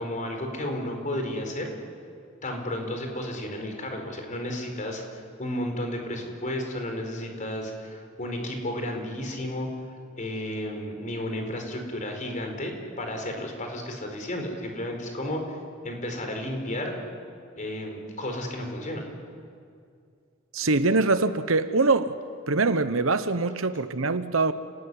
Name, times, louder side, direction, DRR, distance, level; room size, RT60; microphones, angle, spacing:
voice 1, 0.0-1.7 2.4-5.0 5.4-9.7 10.2-15.6 15.8-16.9 17.6-19.0, left 1 dB, 40° left, 4.6 m, -32 dB
voice 2, 20.5-22.2 22.5-24.5, right 3 dB, 70° right, 1.1 m, -23 dB
30.0 x 17.0 x 9.8 m
head